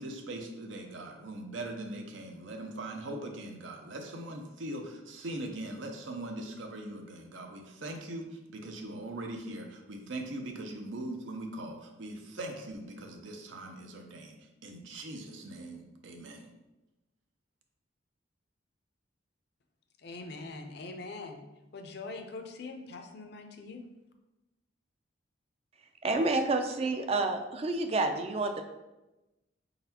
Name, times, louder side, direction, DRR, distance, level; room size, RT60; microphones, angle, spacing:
voice 1, 0.0-14.4 14.6-16.5, right 1 dB, 80° right, 0.6 m, -41 dB
voice 2, 20.0-21.4 21.7-23.8, left 3 dB, 55° left, 0.5 m, -43 dB
voice 3, 26.0-28.6, right 2 dB, 30° right, 0.4 m, -29 dB
4.4 x 4.0 x 2.8 m
head